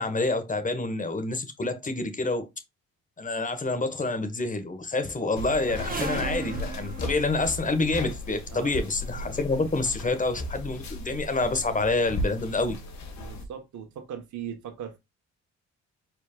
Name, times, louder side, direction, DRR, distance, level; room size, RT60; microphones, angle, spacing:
voice 1, 0.0-2.5 3.2-12.8, left 3 dB, 25° left, 1.4 m, -27 dB
sound 1, 5.4-13.4, left 1 dB, 65° left, 1.9 m, -36 dB
sound 2, 5.7-8.1 9.1-9.3 10.1-10.2 10.4-11.3 11.6-12.2 12.9-13.0 13.3-13.4, right 3 dB, 30° right, 1.8 m, -38 dB
voice 2, 8.5-8.9 13.2-15.0, right 9 dB, 70° right, 1.4 m, -39 dB
4.7 x 4.6 x 2.4 m
cardioid pair, 90°, 30 cm